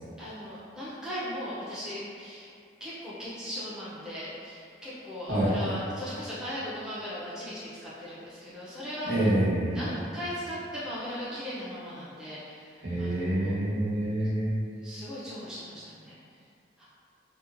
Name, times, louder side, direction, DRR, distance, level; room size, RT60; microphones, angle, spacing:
voice 1, 0.2-2.5 2.8-9.4 9.7-13.6 14.8-16.2 16.8-16.9, equal, 5° right, -11 dB, 0.4 m, -38 dB
voice 2, 9.0-9.8 12.8-14.5, right 1 dB, 70° right, -11 dB, 1.0 m, -27 dB
2.8 x 2.1 x 2.5 m, 2.3 s
head